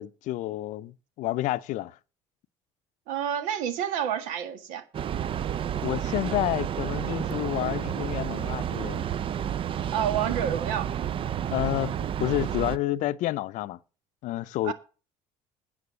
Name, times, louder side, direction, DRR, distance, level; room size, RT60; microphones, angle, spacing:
voice 1, 0.0-2.0 5.8-9.1 11.5-13.8 14.2-14.7, left 15 dB, 65° left, 0.6 m, -29 dB
voice 2, 3.1-4.8 9.9-10.9 14.6-14.7, right 9 dB, 80° right, 1.8 m, -29 dB
Train, 4.9-12.8, right 9 dB, 40° right, 0.5 m, -30 dB
9.6 x 7.7 x 6.3 m
supercardioid pair, 85°, 13 cm